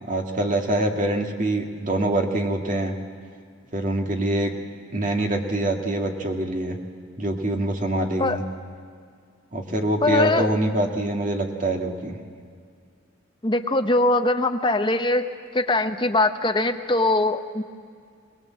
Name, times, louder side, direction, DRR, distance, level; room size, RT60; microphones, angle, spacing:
voice 1, 0.0-2.9 3.7-4.5 4.9-6.8 7.2-8.4 9.5-12.2, right 1 dB, 40° right, 2 dB, 2.0 m, -24 dB
voice 2, 10.0-10.5 13.4-15.3 15.5-17.6, left 2 dB, 25° left, 6 dB, 0.9 m, -21 dB
22.5 x 19.5 x 7.6 m, 2.2 s
head